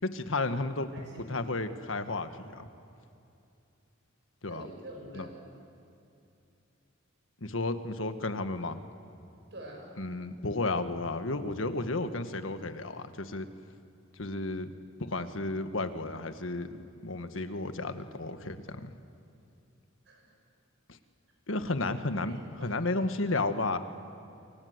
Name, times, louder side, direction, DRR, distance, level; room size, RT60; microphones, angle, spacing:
voice 1, 0.0-0.9 1.3-2.7 4.4-4.7 5.1-5.3 7.4-8.8 10.0-13.5 14.2-14.7 15.0-18.9 20.9-21.0 21.5-23.8, left 2 dB, 80° left, 9 dB, 1.5 m, -33 dB
voice 2, 0.9-1.4 4.5-5.4 9.5-10.0 20.1-20.3 22.2-22.8, right 1 dB, 60° right, 0 dB, 7.4 m, -46 dB
28.0 x 24.5 x 8.1 m, 2.7 s
head